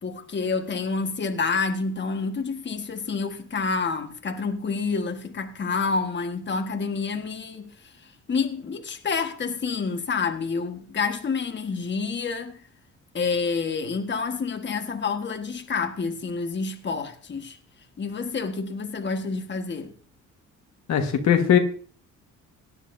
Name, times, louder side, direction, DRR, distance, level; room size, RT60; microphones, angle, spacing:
voice 1, 0.0-12.6 13.1-17.6 18.0-19.9, left 4 dB, 35° left, 1.6 m, -28 dB
voice 2, 20.9-21.6, left 9 dB, 65° left, 1.6 m, -19 dB
18.0 x 10.0 x 2.7 m
cardioid pair, 90°, 30 cm